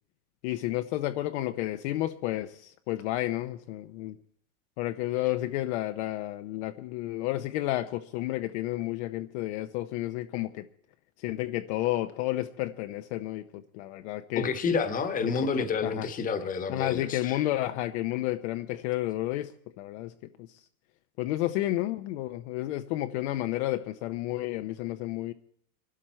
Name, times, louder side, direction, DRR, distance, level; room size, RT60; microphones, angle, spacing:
voice 1, 0.4-4.2 4.8-10.7 11.2-14.5 15.6-16.1 16.7-19.5 19.8-20.1 20.4-20.5 21.2-25.3, left 15 dB, 50° left, 10 dB, 0.8 m, -31 dB
voice 2, 14.4-17.4, left 5 dB, 20° left, 10 dB, 1.3 m, -29 dB
23.0 x 12.5 x 4.4 m, 0.71 s
supercardioid pair, 150°, 42 cm